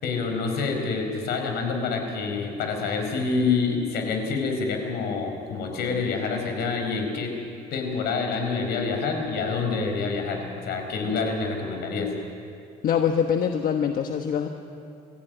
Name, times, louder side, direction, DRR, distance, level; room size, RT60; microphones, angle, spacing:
voice 1, 0.0-7.4 7.7-12.1, left 4 dB, 75° left, 3 dB, 4.7 m, -27 dB
voice 2, 12.8-14.5, left 8 dB, 55° left, 5 dB, 1.2 m, -24 dB
23.5 x 15.0 x 9.2 m, 2.5 s
cardioid pair, 110°, 17 cm